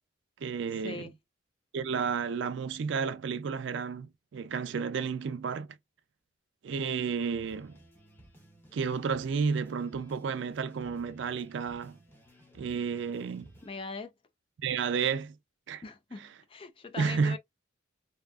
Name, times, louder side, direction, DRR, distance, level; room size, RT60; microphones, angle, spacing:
voice 1, 0.4-1.1 1.7-5.7 6.6-7.8 8.7-12.0 12.5-13.5 14.6-15.3 15.7-15.8 17.0-17.4, right 5 dB, 70° right, 0.4 m, -31 dB
sound 1, 7.2-13.8, right 1 dB, 10° left, 0.9 m, -57 dB
voice 2, 13.6-14.1 15.8-17.4, left 3 dB, 30° left, 0.4 m, -41 dB
2.7 x 2.3 x 2.3 m
head